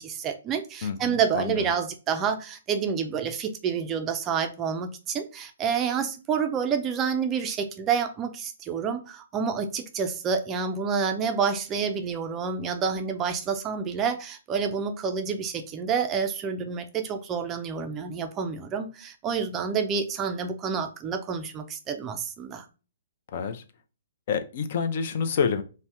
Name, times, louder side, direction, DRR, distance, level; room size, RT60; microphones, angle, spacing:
voice 1, 0.0-22.6, right 6 dB, 20° right, 0.3 m, -28 dB
voice 2, 0.8-1.6 23.3-23.6 24.3-25.6, left 6 dB, 50° left, 0.5 m, -28 dB
2.7 x 2.1 x 3.4 m
hypercardioid pair, 150°, 0 cm